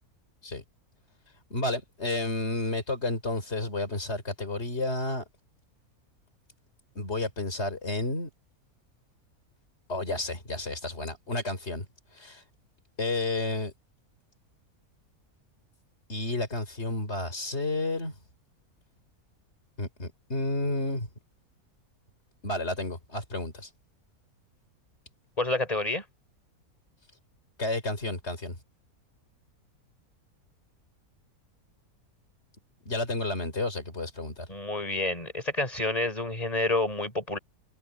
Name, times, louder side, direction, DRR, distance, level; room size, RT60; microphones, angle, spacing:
voice 1, 1.5-5.2 7.0-8.3 9.9-11.9 12.1-12.4 13.0-13.7 16.1-18.1 19.8-21.1 22.4-23.7 27.6-28.6 32.9-34.5, left 2 dB, 45° left, 4.4 m, -31 dB
voice 2, 25.4-26.0 34.5-37.4, left 2 dB, 25° left, 5.0 m, -29 dB
omnidirectional pair, 1.6 m